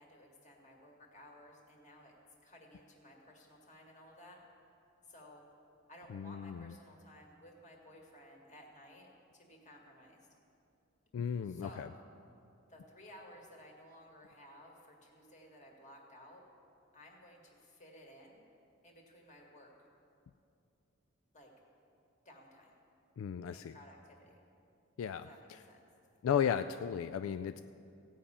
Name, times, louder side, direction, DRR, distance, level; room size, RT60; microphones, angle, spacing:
voice 1, 0.0-2.1 2.4-4.4 5.1-5.4 5.9-10.2 11.4-11.9 12.7-16.4 16.9-18.4 18.8-19.7 21.3-21.5 22.3-22.7 23.5-24.4 25.2-25.8, left 1 dB, 35° left, 0 dB, 1.9 m, -56 dB
voice 2, 6.1-6.7 11.1-11.9 23.2-23.8 25.0-25.3 26.2-27.6, left 8 dB, 75° left, 11 dB, 0.3 m, -35 dB
16.0 x 5.5 x 8.6 m, 2.6 s
head